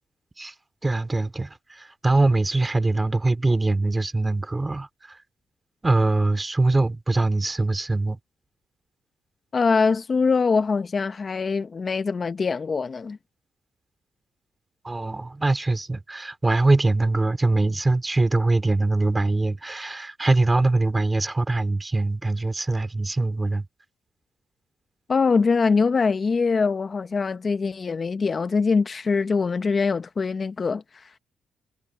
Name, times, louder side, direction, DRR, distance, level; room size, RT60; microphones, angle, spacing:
voice 1, 0.8-4.9 5.8-8.2 14.8-23.7, right 2 dB, 20° right, 2.8 m, -23 dB
voice 2, 9.5-13.2 25.1-31.2, left 4 dB, 35° left, 0.8 m, -23 dB
cardioid pair, 90°, 0 cm